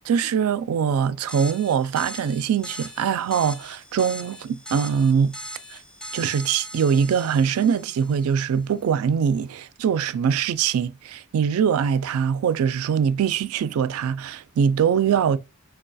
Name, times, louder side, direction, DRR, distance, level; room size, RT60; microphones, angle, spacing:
voice 1, 0.1-5.3 5.7-5.8 6.1-15.4, right 7 dB, 85° right, 0.3 m, -22 dB
sound 1, 1.3-8.4, equal, 5° left, 0.3 m, -40 dB
4.4 x 2.3 x 2.5 m
head